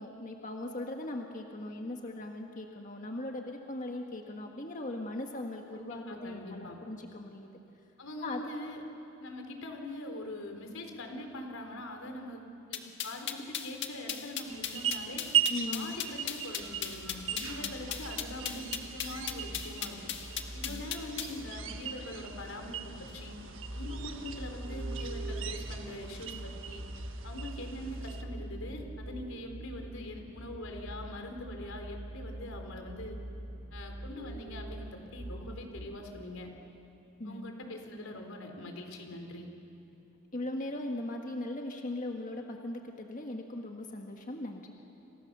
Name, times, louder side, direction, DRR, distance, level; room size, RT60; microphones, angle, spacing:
voice 1, 0.0-7.5 8.2-8.4 15.5-15.9 17.6-17.8 20.6-20.8 37.2-37.5 40.3-44.7, left 1 dB, 40° left, 2 dB, 1.6 m, -39 dB
voice 2, 5.7-6.8 8.0-8.8 9.2-12.4 12.7-15.3 15.7-20.1 20.5-23.4 23.7-26.8 27.2-33.2 33.7-36.5 37.2-39.5, left 1 dB, 85° left, 4 dB, 4.0 m, -43 dB
sound 1, 12.7-21.4, left 10 dB, 60° left, 1.9 m, -36 dB
sound 2, 14.5-28.2, right 9 dB, 70° right, 1.6 m, -38 dB
sound 3, 16.6-36.0, right 1 dB, 50° right, 2.6 m, -44 dB
29.5 x 28.0 x 6.8 m, 2.9 s
head